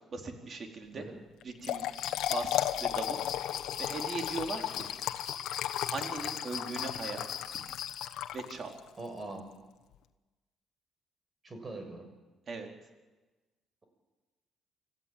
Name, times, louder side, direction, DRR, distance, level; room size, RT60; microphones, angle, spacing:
voice 1, 0.1-1.1 1.4-1.9 2.3-3.2 3.8-4.9 5.9-7.2 8.3-8.7 12.5-12.7, right 4 dB, 45° right, 3 dB, 3.9 m, -39 dB
Trickle dribble / Fill (with liquid), 1.4-8.9, left 13 dB, 85° left, 1.0 m, -35 dB
sound 1, 1.9-8.1, left 9 dB, 70° left, 1.6 m, -41 dB
voice 2, 9.0-9.5 11.4-12.1, right 2 dB, 30° right, 5 dB, 6.3 m, -42 dB
26.0 x 15.0 x 9.2 m, 1.2 s
cardioid pair, 90°, 0 cm